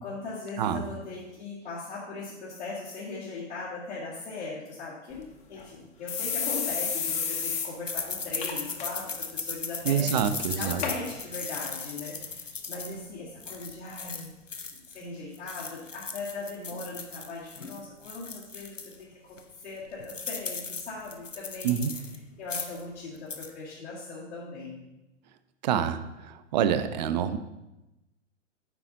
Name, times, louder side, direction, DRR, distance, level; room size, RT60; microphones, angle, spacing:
voice 1, 0.0-10.1 10.6-14.3 14.9-19.4 19.6-21.8 22.4-24.8, left 3 dB, 65° left, -8 dB, 2.3 m, -39 dB
sound 1, 5.1-5.2 5.6-5.7 6.1-7.7 8.0-8.1 8.4-8.8 9.2-9.5 10.2-10.3 10.8-10.9 11.7-11.8, left 6 dB, 20° left, 0.8 m, -31 dB
sound 2, 7.9-15.0 15.3-18.9 19.4-19.5 19.7-22.2 22.4-22.8 23.2-23.5, left 4 dB, 85° left, 0.9 m, -37 dB
voice 2, 9.9-10.8 21.6-21.9 25.6-27.4, right 9 dB, 35° right, 11 dB, 0.5 m, -27 dB
8.9 x 5.7 x 4.0 m, 0.97 s
figure-of-eight pair, 110°, 37 cm